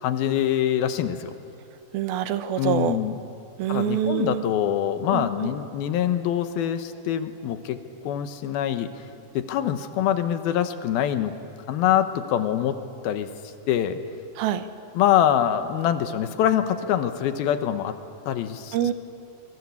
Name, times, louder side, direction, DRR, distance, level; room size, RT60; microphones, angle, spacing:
voice 1, 0.0-1.3 2.6-3.2 3.7-8.9 9.3-11.3 11.7-12.8 13.0-13.3 13.7-14.0 15.0-17.9 18.3-18.8, left 10 dB, 80° left, 9 dB, 3.0 m, -24 dB
voice 2, 1.9-3.0 3.6-4.4 5.1-5.5 14.4-14.7 18.7-18.9, right 10 dB, 85° right, 10 dB, 2.9 m, -25 dB
26.5 x 22.5 x 8.5 m, 2.5 s
omnidirectional pair, 4.3 m